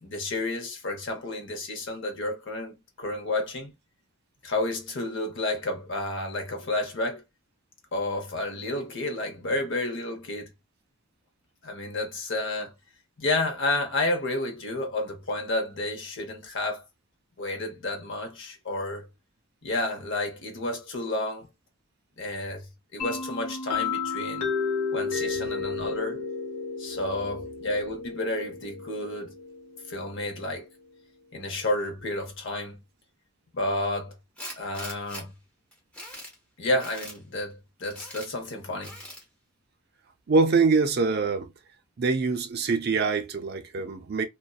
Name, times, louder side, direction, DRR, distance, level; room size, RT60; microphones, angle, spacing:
voice 1, 0.0-3.7 4.4-7.2 7.9-10.5 11.6-12.7 13.2-16.8 17.4-19.1 19.6-21.5 22.2-24.5 24.9-26.3 26.8-29.3 29.9-30.7 31.3-32.8 33.5-34.1 34.6-35.3 36.6-39.0, left 2 dB, 55° left, 0.8 m, -31 dB
sound 1, 23.0-30.6, left 5 dB, 85° left, 0.9 m, -33 dB
Tools, 34.4-35.2 35.7-36.3 36.8-37.2 37.8-38.3 38.8-39.2, equal, 5° left, 0.5 m, -41 dB
voice 2, 40.3-41.5 42.0-44.2, right 4 dB, 45° right, 0.4 m, -24 dB
2.6 x 2.1 x 2.3 m
head